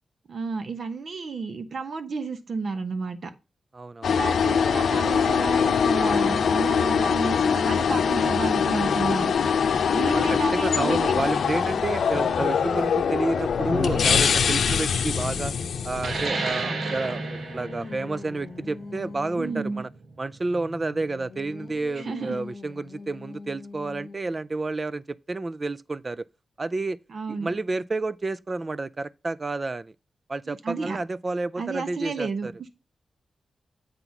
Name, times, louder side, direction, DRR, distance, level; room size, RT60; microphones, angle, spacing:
voice 1, 0.3-3.3 4.1-9.3 9.9-11.3 19.4-19.8 22.0-22.4 27.1-27.5 30.5-31.0 31.6-32.7, right 4 dB, 55° right, 1.0 m, -31 dB
voice 2, 3.7-4.2 10.1-15.5 15.8-19.9 20.2-26.3 26.6-27.0 27.3-29.9 30.3-32.5, right 3 dB, 25° right, 0.3 m, -30 dB
sound 1, 4.0-16.3, left 6 dB, 85° left, 0.6 m, -23 dB
Singing, 14.5-19.9 20.5-24.4, left 3 dB, 55° left, 1.0 m, -42 dB
sound 2, 15.9-21.1, right 3 dB, 75° right, 1.3 m, -33 dB
8.0 x 4.1 x 5.9 m
wide cardioid pair, 155°, 0 cm